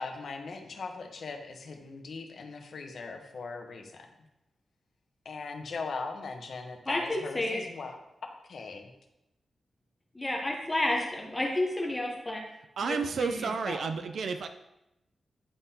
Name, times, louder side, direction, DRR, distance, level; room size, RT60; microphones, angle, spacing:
voice 1, 0.0-4.1 5.2-8.9, left 4 dB, 70° left, 4 dB, 0.8 m, -39 dB
voice 2, 6.9-7.6 10.1-12.4 12.8-13.4 13.7-13.8, left 1 dB, 15° left, 0 dB, 0.8 m, -31 dB
voice 3, 12.8-14.5, right 5 dB, 80° right, 8 dB, 0.3 m, -31 dB
9.8 x 3.7 x 2.7 m, 0.90 s
wide cardioid pair, 105°, 0 cm